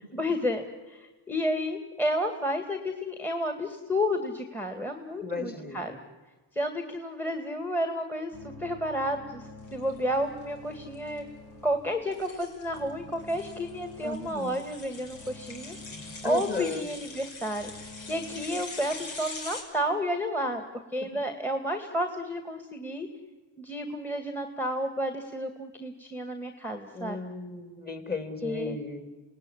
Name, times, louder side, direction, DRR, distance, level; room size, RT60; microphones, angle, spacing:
voice 1, 0.2-5.9 6.5-11.3 11.6-23.1 23.6-27.2 28.4-28.8, equal, 5° left, 7 dB, 2.0 m, -31 dB
voice 2, 5.2-6.0 14.0-14.6 16.2-16.9 26.9-29.0, left 3 dB, 20° left, 6 dB, 3.7 m, -35 dB
sound 1, 8.3-18.4, left 3 dB, 65° left, 5.8 m, -49 dB
sound 2, 9.6-19.6, left 3 dB, 90° left, 5.2 m, -44 dB
28.0 x 19.0 x 10.0 m, 1.3 s
cardioid pair, 90°, 44 cm